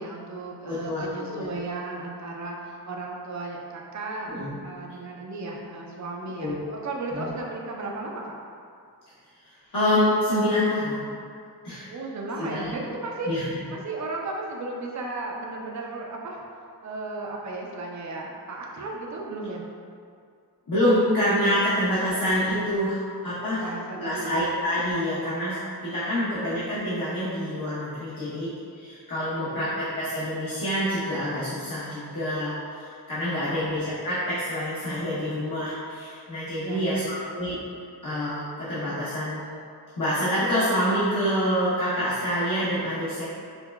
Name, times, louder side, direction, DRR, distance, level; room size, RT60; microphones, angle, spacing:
voice 1, 0.0-8.4 11.9-13.3 13.7-16.4 16.8-19.7 23.6-24.4 25.9-26.3 29.3-29.6 36.6-37.4, right 2 dB, 45° right, -1 dB, 0.5 m, -35 dB
voice 2, 0.7-1.5 4.3-4.5 6.4-6.6 7.1-7.3 9.7-11.1 11.6-11.9 12.4-12.8 13.3-13.4 20.7-23.7 23.9-37.6 38.0-39.4 40.0-43.3, equal, 55° left, -12 dB, 0.9 m, -26 dB
5.5 x 2.2 x 2.2 m, 2.3 s
wide cardioid pair, 55°, 40 cm